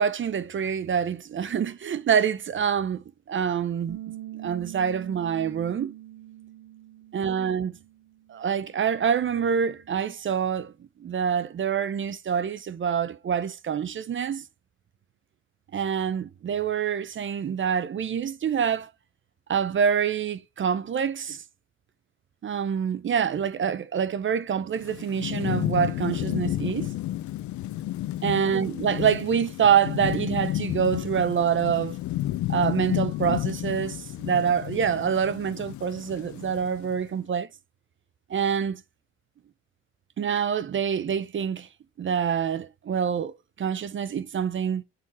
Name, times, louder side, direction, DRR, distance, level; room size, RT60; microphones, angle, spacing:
voice 1, 0.0-4.0 4.4-5.9 7.1-7.8 8.3-10.7 11.0-14.4 15.7-18.9 19.5-21.4 22.4-26.9 28.2-32.0 32.5-37.5 38.3-38.8 40.2-41.7 42.0-44.8, right 7 dB, 40° right, 0.6 m, -26 dB
Bass guitar, 3.9-10.1, right 13 dB, 85° right, 0.9 m, -44 dB
Thunderstorm / Rain, 24.8-37.0, left 14 dB, 70° left, 0.5 m, -31 dB
6.7 x 3.8 x 4.2 m
cardioid pair, 90°, 30 cm